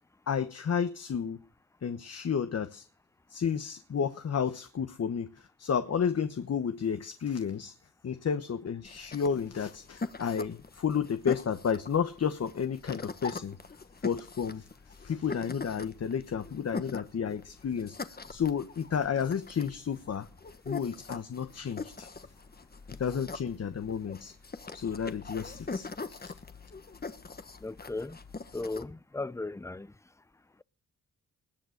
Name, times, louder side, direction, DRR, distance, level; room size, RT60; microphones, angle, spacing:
voice 1, 0.3-1.4 1.8-2.8 3.3-7.7 8.0-13.6 14.0-14.7 15.0-18.0 18.3-20.3 20.7-22.1 23.0-24.3 24.7-25.9 26.2-26.3, left 7 dB, 50° left, 1.1 m, -31 dB
sound 1, 8.8-28.8, left 4 dB, 30° left, 1.4 m, -42 dB
voice 2, 27.6-28.2 28.5-29.9, left 2 dB, 10° left, 0.6 m, -36 dB
20.0 x 8.1 x 6.5 m
cardioid pair, 70°, 32 cm